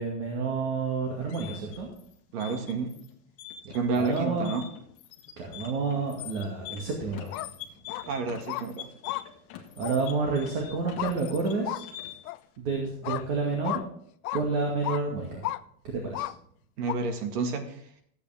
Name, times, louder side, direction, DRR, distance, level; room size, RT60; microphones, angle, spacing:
voice 1, 0.0-1.9 3.6-4.5 5.4-7.5 9.8-11.8 12.6-13.8 14.3-15.5 15.8-16.3, right 4 dB, 45° right, 0 dB, 2.2 m, -29 dB
sound 1, 1.0-12.4, left 10 dB, 35° left, 1.4 m, -44 dB
voice 2, 2.3-2.9 3.7-4.6 8.1-8.9 16.8-17.8, right 4 dB, 70° right, 5 dB, 2.1 m, -30 dB
sound 2, 7.3-7.5 7.9-8.0 8.5-8.6 9.0-9.2 9.8-9.9 11.0-11.2 11.6-11.8 12.3-12.4 13.0-13.2 13.6-13.8 14.2-14.4 14.8-15.0 15.4-15.6 16.1-16.3 16.9-17.0, left 17 dB, 65° left, 0.5 m, -33 dB
14.0 x 8.5 x 3.5 m, 0.67 s
supercardioid pair, 175°, 48 cm